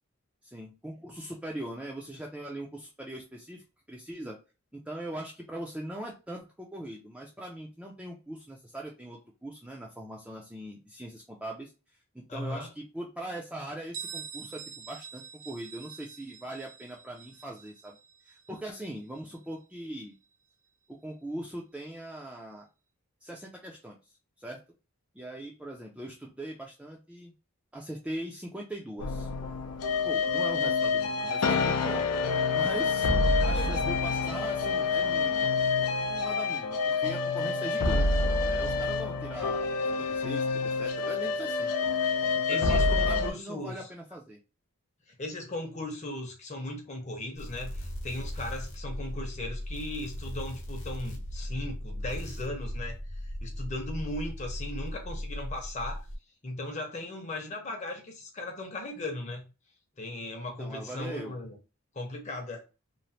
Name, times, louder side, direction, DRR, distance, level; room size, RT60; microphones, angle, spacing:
voice 1, 0.4-4.4 4.7-11.7 12.1-18.0 18.3-20.1 20.9-22.7 23.2-24.0 24.4-24.6 25.1-27.3 27.7-29.3 30.0-32.0 32.5-33.1 33.4-35.5 36.0-38.1 38.4-39.7 40.0-41.7 42.4-44.4 60.6-61.4, right 1 dB, 5° right, 0.3 m, -40 dB
voice 2, 12.3-12.7 33.0-33.8 42.5-43.9 45.1-56.0 56.4-59.5 60.0-61.6 61.9-62.6, left 1 dB, 30° left, 0.7 m, -37 dB
Bell, 13.9-19.4, right 7 dB, 65° right, 0.5 m, -45 dB
sound 1, 29.0-43.3, left 4 dB, 85° left, 0.5 m, -27 dB
sound 2, 47.4-56.2, equal, 60° left, 0.9 m, -37 dB
3.0 x 2.0 x 2.7 m
head